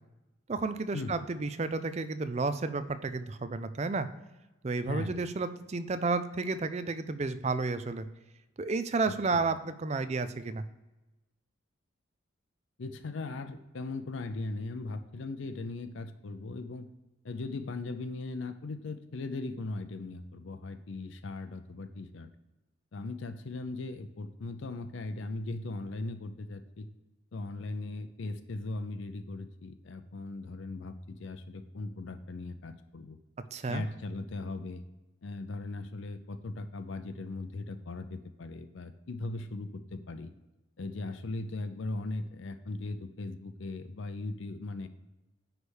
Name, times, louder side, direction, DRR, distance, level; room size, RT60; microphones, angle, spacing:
voice 1, 0.5-4.1 4.6-8.1 8.6-10.6 33.5-33.8, right 3 dB, 30° right, 11 dB, 0.4 m, -32 dB
voice 2, 4.8-5.2 9.3-9.4 12.8-16.9 17.2-22.3 22.9-26.9 27.3-33.2 33.7-34.8 35.2-40.3 40.8-44.9, left 2 dB, 65° left, 9 dB, 0.5 m, -38 dB
9.8 x 3.3 x 6.2 m, 1.0 s
head